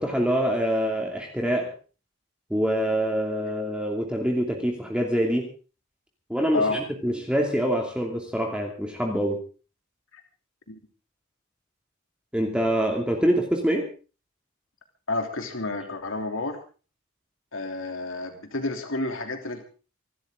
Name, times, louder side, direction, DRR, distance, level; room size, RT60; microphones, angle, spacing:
voice 1, 0.0-1.7 2.5-5.5 6.3-9.4 12.3-13.8, equal, 5° right, 1 dB, 2.7 m, -25 dB
voice 2, 15.1-16.6 17.5-19.6, left 2 dB, 75° left, 4 dB, 3.2 m, -30 dB
26.0 x 13.0 x 3.8 m, 0.36 s
head